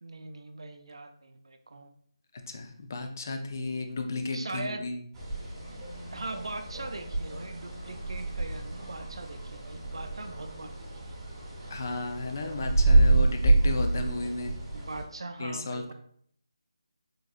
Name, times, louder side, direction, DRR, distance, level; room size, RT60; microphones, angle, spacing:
voice 1, 0.0-1.9 4.3-4.9 6.1-11.2 14.7-15.9, right 2 dB, 70° right, 7 dB, 0.4 m, -41 dB
voice 2, 2.3-5.0 11.7-14.5 15.4-15.9, left 3 dB, 35° left, 5 dB, 0.4 m, -34 dB
sound 1, 5.1-15.0, right 2 dB, 10° right, 0.6 m, -28 dB
3.8 x 2.6 x 2.4 m, 0.64 s
figure-of-eight pair, 170°, 3 cm